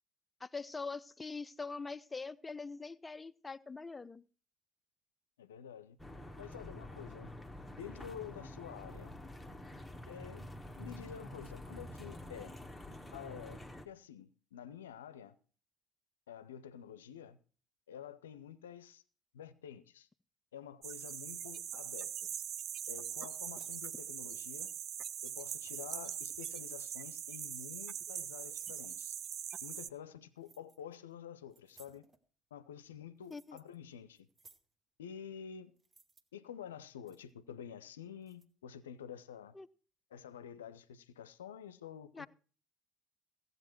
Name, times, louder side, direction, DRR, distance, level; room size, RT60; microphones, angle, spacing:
voice 1, 0.4-4.2 33.3-33.6 39.5-39.7 42.1-42.3, left 4 dB, 20° left, 0.4 m, -43 dB
voice 2, 5.4-6.0 6.4-7.3 7.7-9.1 10.1-10.5 10.8-12.5 13.1-15.4 16.3-17.4 17.9-19.0 19.3-20.1 20.5-22.3 22.9-24.7 25.2-29.2 29.6-32.1 32.5-34.3 35.0-35.7 36.3-39.6 40.1-42.3, left 9 dB, 80° left, 0.6 m, -49 dB
sound 1, 6.0-13.9, left 1 dB, 5° left, 1.2 m, -48 dB
sound 2, 20.8-29.9, right 9 dB, 50° right, 0.4 m, -42 dB
sound 3, 22.7-23.3 23.6-23.8 24.6-25.9 26.8-27.1 27.3-27.8 28.1-28.2 28.5-29.0 30.4-31.0 31.5-32.2 32.9-33.8 34.1-34.7 35.8-36.2 36.8-37.3 38.2-38.5, right 4 dB, 30° right, 1.0 m, -63 dB
15.0 x 8.0 x 4.4 m
figure-of-eight pair, 60°, 0 cm